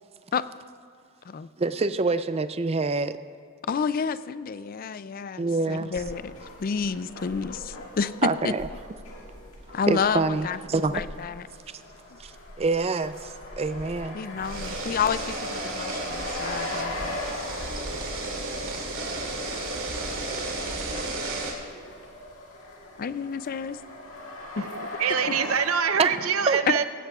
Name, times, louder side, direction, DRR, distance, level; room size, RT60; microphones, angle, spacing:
voice 1, 1.6-3.2 5.4-5.9 8.2-8.7 9.9-11.0 12.2-14.2 26.0-26.1 26.5-26.6, right 3 dB, 30° right, 12 dB, 0.4 m, -26 dB
voice 2, 3.7-6.3 6.6-8.5 9.7-10.6 10.9-11.5 14.1-17.2 23.0-23.8 24.6-24.7 25.3-25.4 26.7-26.8, left 6 dB, 45° left, 14 dB, 0.4 m, -29 dB
sound 1, 5.9-25.8, left 2 dB, 75° left, 1.9 m, -40 dB
sound 2, 14.4-21.5, right 2 dB, 65° right, 2.5 m, -33 dB
voice 3, 24.6-26.8, right 7 dB, 85° right, 9 dB, 0.7 m, -25 dB
18.0 x 15.5 x 2.4 m, 2.4 s
head